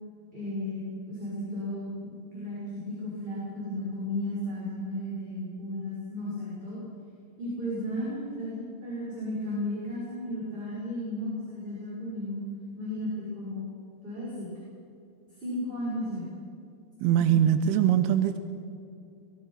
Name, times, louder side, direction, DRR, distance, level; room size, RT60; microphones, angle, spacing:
voice 1, 0.3-6.8 7.4-12.4 12.8-13.6 14.0-14.5 15.3-16.3 17.3-17.4, left 1 dB, 10° right, -8 dB, 6.8 m, -34 dB
voice 2, 17.0-18.4, right 10 dB, 80° right, 9 dB, 2.3 m, -22 dB
23.5 x 22.5 x 5.9 m, 2.6 s
omnidirectional pair, 5.5 m